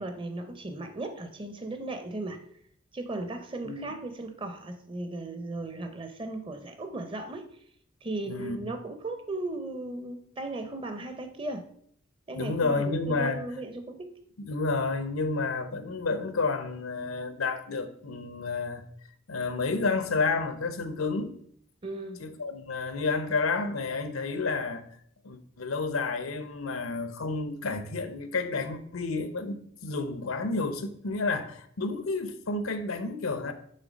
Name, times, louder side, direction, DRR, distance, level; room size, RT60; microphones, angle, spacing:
voice 1, 0.0-2.4 2.9-7.5 8.0-11.7 12.3-14.2 21.8-22.2, right 2 dB, 25° right, 0.6 m, -36 dB
voice 2, 3.6-4.0 8.3-8.6 12.3-13.4 14.4-18.8 19.3-21.4 22.2-24.8 25.2-33.5, left 3 dB, 90° left, 0.7 m, -30 dB
6.5 x 3.5 x 5.1 m
head